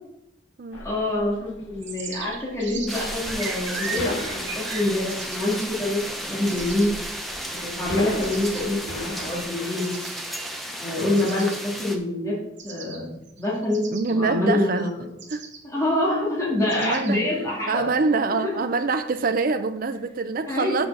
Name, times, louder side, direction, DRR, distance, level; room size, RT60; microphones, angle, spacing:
sound 1, 0.7-9.4, left 1 dB, 90° left, 1.6 m, -38 dB
voice 1, 0.8-6.0 6.3-6.9 7.6-9.9 10.7-12.3 12.6-13.1 13.4-15.1 15.6-17.9 18.3-18.6 20.5-20.9, left 1 dB, 15° left, -6 dB, 2.6 m, -26 dB
sound 2, 1.8-6.9 7.5-8.6 9.1-9.4 9.8-10.4 11.2-11.6 12.6-13.0 13.3-14.9 15.2-15.6 16.7-17.1, right 5 dB, 65° right, 1.5 m, -38 dB
sound 3, 2.9-12.0, equal, ahead, 0.9 m, -33 dB
voice 2, 13.9-14.9 15.3-15.4 16.7-17.2 17.7-20.9, right 4 dB, 45° right, 8 dB, 0.5 m, -25 dB
6.2 x 6.1 x 7.1 m, 0.85 s
head